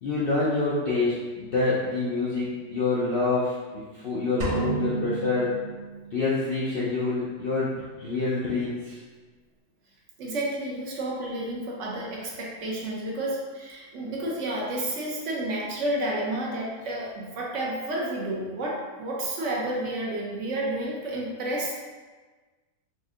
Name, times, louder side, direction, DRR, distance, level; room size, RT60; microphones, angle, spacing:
voice 1, 0.0-5.5 6.1-9.0, left 3 dB, 65° left, -7 dB, 0.5 m, -27 dB
sound 1, 4.4-6.4, right 3 dB, 85° right, 0.3 m, -31 dB
voice 2, 10.2-21.7, right 1 dB, 65° right, -3 dB, 0.9 m, -31 dB
4.2 x 2.6 x 2.3 m, 1.3 s
omnidirectional pair, 1.5 m